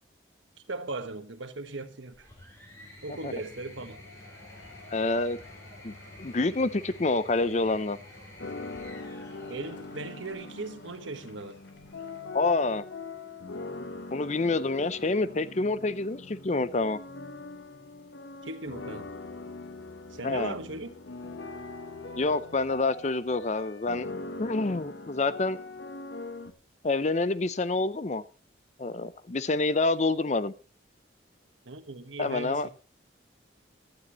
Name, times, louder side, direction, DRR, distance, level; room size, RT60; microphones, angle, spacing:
voice 1, 0.7-2.3 3.0-4.0 9.5-11.6 18.4-19.1 20.1-20.9 31.7-32.7, right 2 dB, 80° right, 1.3 m, -38 dB
sound 1, 2.1-10.5 11.7-12.4, left 1 dB, 15° left, 4.0 m, -50 dB
Cheering / Applause / Crowd, 3.8-12.7, left 2 dB, 60° left, 3.1 m, -53 dB
voice 2, 4.9-5.4 5.8-8.0 12.3-12.8 13.7-17.0 20.2-20.5 22.2-24.1 24.4-25.6 26.8-28.2 28.8-30.5 32.2-32.7, left 3 dB, 35° left, 0.6 m, -27 dB
sound 2, 8.4-26.5, left 3 dB, 80° left, 1.0 m, -42 dB
15.0 x 12.0 x 3.0 m
head